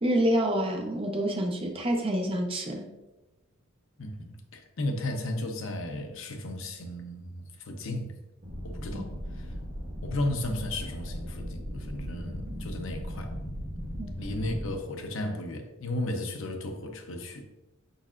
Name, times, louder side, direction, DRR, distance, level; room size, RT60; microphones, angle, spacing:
voice 1, 0.0-2.8 8.9-9.0 14.0-14.2, right 1 dB, 25° right, 2 dB, 0.5 m, -27 dB
voice 2, 4.0-8.2 8.6-9.1 9.4-9.5 10.0-13.3 14.2-17.5, left 1 dB, 65° left, 4 dB, 0.6 m, -34 dB
sound 1, 8.4-14.7, equal, 45° right, 0.9 m, -37 dB
5.2 x 4.0 x 2.4 m, 1.0 s
head